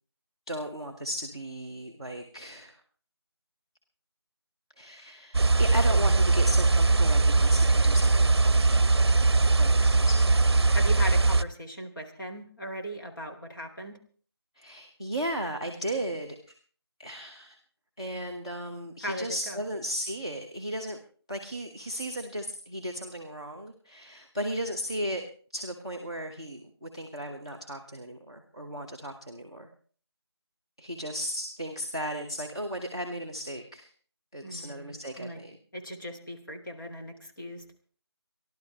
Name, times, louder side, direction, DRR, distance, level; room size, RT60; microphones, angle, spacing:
voice 1, 0.5-2.7 4.8-8.9 9.5-10.2 14.6-16.4 17.0-17.6 18.0-21.0 21.3-25.2 25.5-29.7 30.8-33.9 34.3-35.6, equal, 10° left, -4 dB, 0.9 m, -35 dB
sound 1, 5.3-11.4, right 3 dB, 70° right, 0.6 m, -21 dB
voice 2, 10.7-13.9 19.0-19.6 34.4-35.4 35.7-37.6, equal, 50° left, 1 dB, 2.8 m, -38 dB
28.0 x 12.0 x 3.4 m, 0.43 s
figure-of-eight pair, 175°, 14 cm